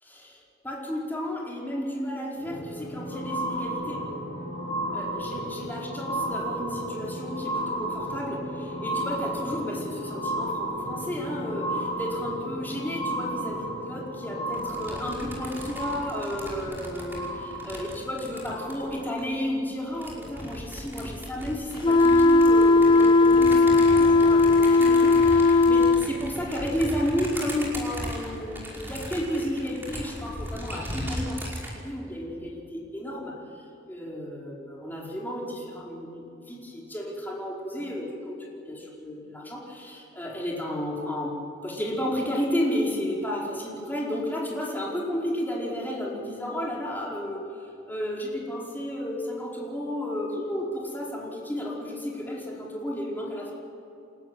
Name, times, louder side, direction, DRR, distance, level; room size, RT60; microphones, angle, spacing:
voice 1, 0.0-4.1 4.9-33.4 33.9-41.4 41.6-47.4 47.9-53.5, left 1 dB, 10° left, -3 dB, 4.9 m, -32 dB
sound 1, 2.4-19.2 20.0-20.1, right 1 dB, 75° left, 6.5 m, -33 dB
sound 2, 14.5-19.3 19.9-31.7, equal, 10° right, 5.5 m, -37 dB
sound 3, 21.8-26.1, left 3 dB, 25° left, 0.7 m, -17 dB
29.5 x 13.5 x 9.3 m, 2.8 s
head